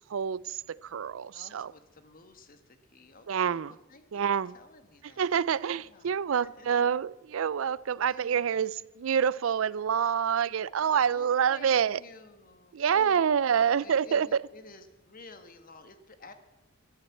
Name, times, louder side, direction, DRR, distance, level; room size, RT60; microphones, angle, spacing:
voice 1, 0.1-1.7 3.3-3.7 4.1-4.5 5.2-12.0 12.7-14.3, right 7 dB, 70° right, 21 dB, 0.4 m, -27 dB
voice 2, 1.3-4.3 4.5-5.4 5.8-6.9 8.1-8.8 11.1-13.2 13.5-16.3, left 3 dB, 40° left, 8 dB, 1.4 m, -53 dB
13.5 x 11.0 x 8.3 m, 1.1 s
head